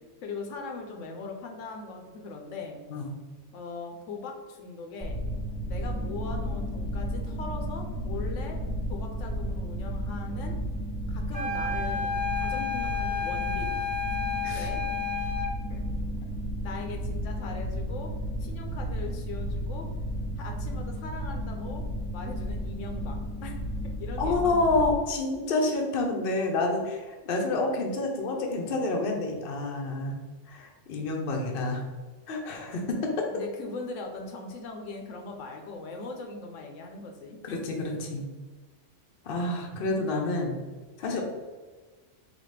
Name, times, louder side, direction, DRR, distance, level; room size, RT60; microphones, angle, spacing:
voice 1, 0.2-2.8 3.5-5.2 5.7-8.6 8.9-10.6 11.1-13.8 14.5-14.8 15.7-15.8 16.6-18.1 18.4-19.9 20.4-21.9 22.1-24.4 33.3-37.4, left 3 dB, 80° left, 3 dB, 1.0 m, -40 dB
sound 1, 5.0-24.9, equal, ahead, 1.3 m, -33 dB
sound 2, 11.3-15.6, left 6 dB, 45° right, 0.7 m, -31 dB
voice 2, 24.2-30.2 30.5-31.8 32.3-33.1 37.4-38.2 39.2-40.6 41.0-41.2, left 2 dB, 55° left, 1 dB, 0.8 m, -28 dB
4.1 x 2.8 x 3.2 m, 1.3 s
omnidirectional pair, 1.3 m